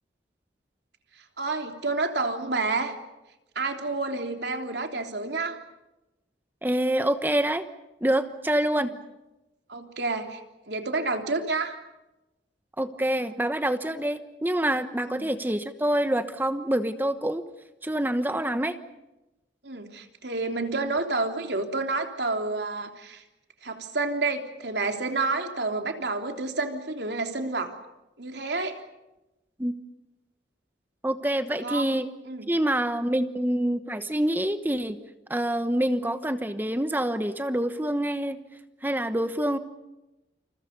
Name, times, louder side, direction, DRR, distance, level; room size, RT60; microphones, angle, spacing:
voice 1, 1.4-2.9 3.5-5.6 8.7-8.9 9.7-10.4 10.7-11.8 15.1-15.3 19.6-23.2 23.6-27.7 28.2-28.8 31.5-31.9 32.2-32.5, right 3 dB, 70° right, 4 dB, 3.4 m, -29 dB
voice 2, 6.6-7.7 8.0-8.9 12.8-17.4 17.8-18.8 29.6-29.7 31.0-32.1 32.5-35.0 35.3-38.4 38.8-39.6, right 1 dB, 10° right, 9 dB, 1.1 m, -26 dB
29.0 x 28.5 x 5.4 m, 0.99 s
head